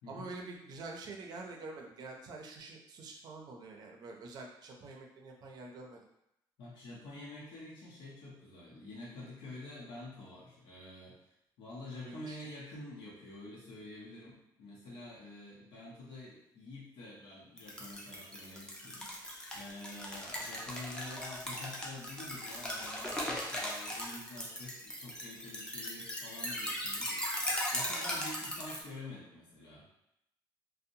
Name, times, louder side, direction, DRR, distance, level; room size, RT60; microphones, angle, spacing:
voice 1, 0.1-6.1 12.0-12.4, right 3 dB, 55° right, 1 dB, 0.4 m, -46 dB
voice 2, 6.6-11.2 11.6-30.0, left 2 dB, 90° left, -6 dB, 0.7 m, -48 dB
sound 1, 17.6-28.8, equal, 10° left, 0.5 m, -38 dB
2.7 x 2.0 x 2.6 m, 0.82 s
cardioid pair, 140°, 8 cm